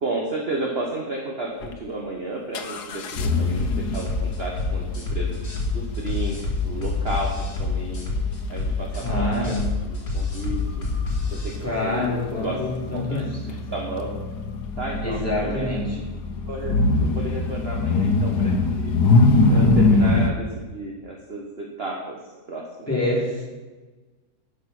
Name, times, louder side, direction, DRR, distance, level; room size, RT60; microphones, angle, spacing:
voice 1, 0.0-5.4 5.7-6.4 6.6-8.0 8.5-9.5 9.9-10.9 11.3-12.1 12.4-13.2 13.5-14.2 14.8-16.0 16.4-18.9 19.5-22.2 22.5-22.9, right 2 dB, 40° right, -1 dB, 1.3 m, -32 dB
sound 1, 1.6-1.7 2.6-20.3, left 3 dB, 75° left, 1.4 m, -24 dB
sound 2, 3.6-11.6, left 3 dB, 40° left, 2.5 m, -27 dB
voice 2, 9.0-9.6 11.6-13.4 15.0-16.0 22.9-23.4, left 2 dB, 10° left, -6 dB, 3.5 m, -26 dB
11.5 x 6.8 x 6.0 m, 1.3 s
omnidirectional pair, 1.7 m